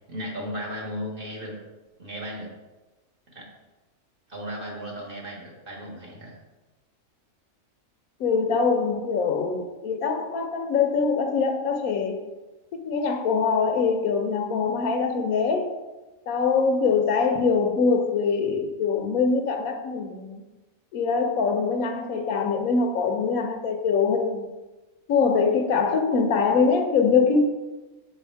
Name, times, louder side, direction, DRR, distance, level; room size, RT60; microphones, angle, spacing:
voice 1, 0.1-1.5 2.0-2.5 3.3-3.5 4.3-6.4, equal, 40° right, -2 dB, 1.5 m, -35 dB
voice 2, 8.2-12.2 12.7-15.7 16.3-20.4 20.9-24.4 25.1-27.4, left 5 dB, 85° left, 6 dB, 1.2 m, -23 dB
7.2 x 3.5 x 4.5 m, 1.1 s
omnidirectional pair, 1.4 m